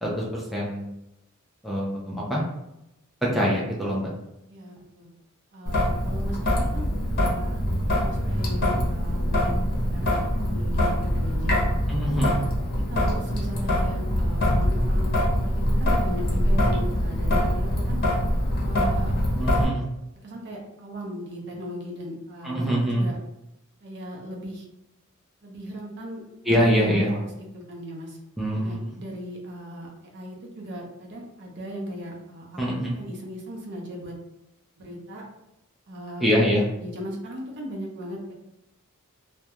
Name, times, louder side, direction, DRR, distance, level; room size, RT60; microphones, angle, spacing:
voice 1, 0.0-0.9 1.6-2.4 3.3-4.1 11.9-12.4 19.4-19.8 22.4-23.0 26.5-27.1 28.4-28.8 32.6-32.9 36.2-36.6, equal, ahead, -5 dB, 0.5 m, -24 dB
voice 2, 4.5-5.1 5.5-7.6 8.0-9.5 9.9-11.6 12.2-12.5 12.9-18.0 18.6-19.1 20.2-23.2 23.8-24.7 25.4-28.2 28.6-34.1 34.8-35.2 35.9-38.3, equal, 55° right, -1 dB, 0.6 m, -38 dB
Traffic noise roadway noise / Drip / Trickle dribble, 5.7-19.7, equal, 45° left, 0.7 m, -24 dB
2.3 x 2.2 x 2.8 m, 0.88 s
head